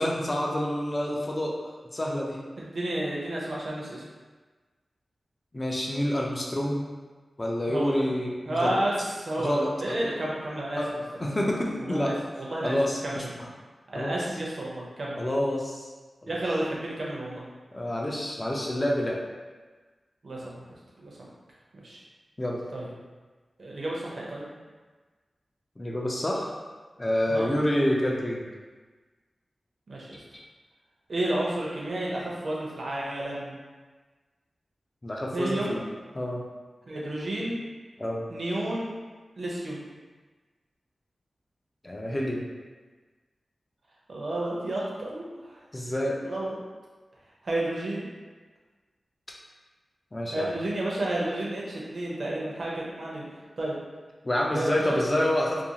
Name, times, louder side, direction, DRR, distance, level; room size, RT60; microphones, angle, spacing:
voice 1, 0.0-1.5 1.9-2.4 5.5-6.8 7.4-8.8 9.4-10.1 10.8-10.9 11.2-12.2 12.6-13.5 13.9-14.1 15.2-15.9 16.2-16.3 17.7-19.2 22.4-22.6 25.8-26.5 27.0-28.5 35.0-35.8 36.1-36.4 38.0-38.2 41.8-42.5 45.7-46.2 50.1-50.5 54.2-55.6, left 1 dB, 25° left, -2 dB, 0.4 m, -28 dB
voice 2, 2.6-4.0 7.7-8.1 8.5-9.5 9.8-10.8 11.8-12.8 13.0-13.3 13.9-15.2 16.3-17.4 20.2-20.5 21.0-21.3 21.8-22.0 22.7-22.9 23.6-24.5 27.3-27.5 29.9-30.2 31.1-33.6 35.3-35.8 36.9-37.6 38.3-38.9 39.4-39.8 44.1-45.6 46.2-46.6 47.4-48.1 50.3-53.3 53.6-53.7 54.5-55.2, right 1 dB, 60° right, -4 dB, 0.6 m, -31 dB
2.5 x 2.3 x 2.8 m, 1.3 s
wide cardioid pair, 110°, 0 cm